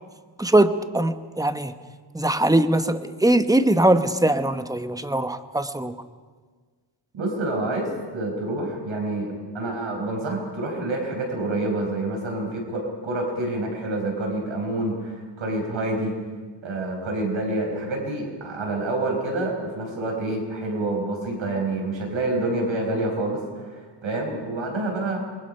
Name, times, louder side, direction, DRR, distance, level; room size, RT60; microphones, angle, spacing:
voice 1, 0.4-1.7 2.1-6.0, right 1 dB, 10° right, 10 dB, 1.1 m, -21 dB
voice 2, 7.1-16.2 16.6-25.2, right 2 dB, 90° right, 1 dB, 5.6 m, -27 dB
27.5 x 21.5 x 5.7 m, 1.5 s
wide cardioid pair, 95°, 45 cm